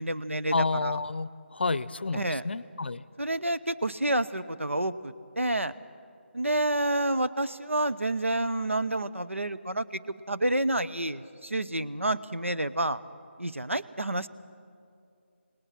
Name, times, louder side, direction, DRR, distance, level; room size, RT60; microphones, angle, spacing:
voice 1, 0.0-1.0 2.1-2.4 3.2-5.7 6.3-13.0 13.4-14.3, right 1 dB, 90° right, 13 dB, 0.8 m, -29 dB
voice 2, 0.5-3.0, left 3 dB, 55° left, 19 dB, 0.6 m, -30 dB
27.5 x 19.0 x 5.9 m, 2.4 s
figure-of-eight pair, 160°, 7 cm